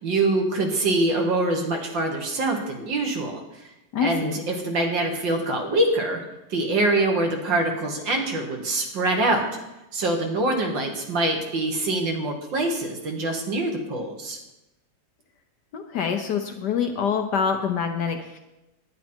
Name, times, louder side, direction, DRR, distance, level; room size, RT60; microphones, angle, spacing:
voice 1, 0.0-3.4 4.0-6.2 6.5-9.5 9.9-14.4, right 2 dB, 65° right, 2 dB, 2.1 m, -24 dB
voice 2, 3.9-4.4 15.7-18.4, left 6 dB, 65° left, 5 dB, 1.2 m, -26 dB
10.0 x 9.8 x 4.4 m, 0.96 s
omnidirectional pair, 2.3 m